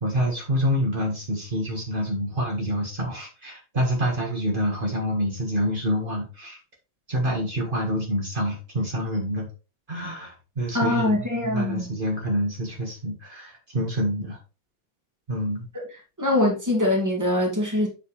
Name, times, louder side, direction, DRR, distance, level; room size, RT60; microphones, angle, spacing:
voice 1, 0.0-6.6 7.1-9.5 9.9-14.4 15.3-15.7, equal, 85° right, 0.4 m, -27 dB
voice 2, 10.7-11.9 16.2-17.9, left 1 dB, 10° right, 1.4 m, -23 dB
7.2 x 6.5 x 3.3 m
omnidirectional pair, 4.1 m